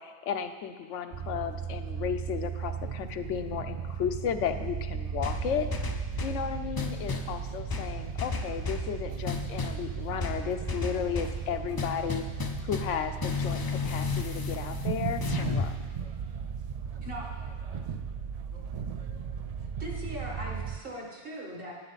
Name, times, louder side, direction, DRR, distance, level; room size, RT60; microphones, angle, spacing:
voice 1, 0.0-5.7 6.2-12.2 12.6-15.9, left 8 dB, 85° left, 8 dB, 1.0 m, -34 dB
sound 1, 1.1-20.8, right 7 dB, 85° right, 0.3 m, -36 dB
sound 2, 5.2-6.4 6.8-7.3 7.7-8.9 9.3-9.8 10.2-11.4 11.8-13.0 13.2-15.7, left 5 dB, 35° left, 0.3 m, -33 dB
voice 2, 6.0-6.6 7.0-7.5 15.5-16.1 16.8-17.3 17.7-19.5, right 2 dB, 65° right, -1 dB, 1.6 m, -60 dB
voice 3, 19.8-21.7, equal, 50° right, -2 dB, 2.0 m, -39 dB
11.0 x 9.8 x 4.0 m, 1.4 s
omnidirectional pair, 1.2 m